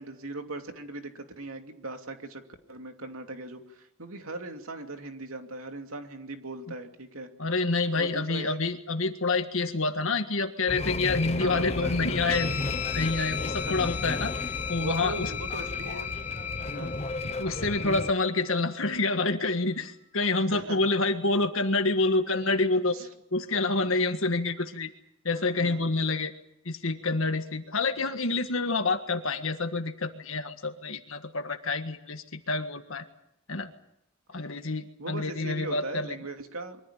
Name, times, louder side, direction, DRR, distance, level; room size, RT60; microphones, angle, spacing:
voice 1, 0.0-2.4 2.7-7.3 8.0-8.6 11.4-12.4 13.6-13.8 14.8-16.1 16.7-17.0 20.5-20.9 22.9-23.1 23.6-24.0 25.5-26.0 35.0-36.8, right 2 dB, 75° right, 5 dB, 2.7 m, -39 dB
voice 2, 7.4-12.6 12.9-14.3 14.7-15.3 17.2-24.9 25.2-26.3 26.6-33.0 33.5-33.7 34.3-36.1, left 3 dB, 70° left, 7 dB, 1.7 m, -28 dB
sound 1, 10.7-18.1, left 3 dB, 30° left, 0.8 m, -33 dB
Guitar, 12.3-19.2, left 9 dB, 45° left, 3.1 m, -39 dB
24.0 x 15.0 x 10.0 m, 0.78 s
head